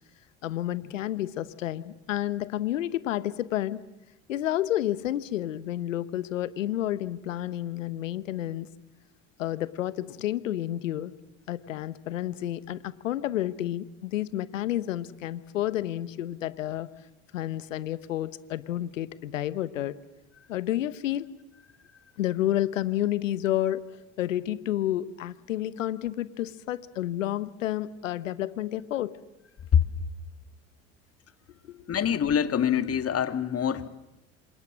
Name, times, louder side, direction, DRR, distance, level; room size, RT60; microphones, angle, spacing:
voice 1, 0.4-3.8 4.3-8.7 9.4-11.1 11.5-16.9 17.3-20.0 20.5-21.3 22.2-29.2 31.7-31.9, left 13 dB, 90° left, 17 dB, 1.1 m, -30 dB
voice 2, 31.9-33.9, left 8 dB, 40° left, 11 dB, 2.2 m, -24 dB
27.5 x 26.5 x 7.6 m, 0.95 s
hypercardioid pair, 75°, 37 cm